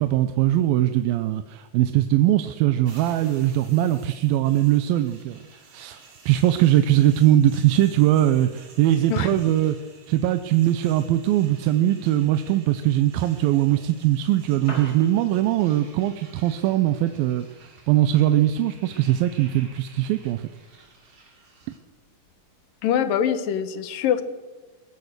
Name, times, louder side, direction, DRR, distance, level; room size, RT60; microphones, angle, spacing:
voice 1, 0.0-5.4 5.7-9.8 10.1-20.4, right 13 dB, 85° right, 10 dB, 2.6 m, -21 dB
sound 1, 2.8-21.8, right 4 dB, 35° right, 3.5 m, -51 dB
voice 2, 9.1-9.4 22.8-24.2, left 9 dB, 75° left, 12 dB, 2.8 m, -24 dB
Piano, 14.4-23.4, equal, 25° left, 5.2 m, -49 dB
21.0 x 19.0 x 6.7 m, 1.3 s
omnidirectional pair, 4.1 m